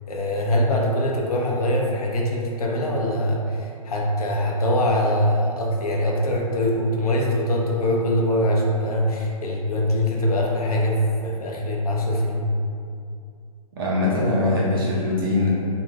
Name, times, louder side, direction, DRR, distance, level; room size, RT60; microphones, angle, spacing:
voice 1, 0.1-12.5, left 1 dB, 85° left, -1 dB, 0.6 m, -23 dB
voice 2, 13.7-15.5, left 2 dB, 40° right, -5 dB, 0.6 m, -22 dB
2.5 x 2.2 x 3.2 m, 2.4 s
hypercardioid pair, 160°, 19 cm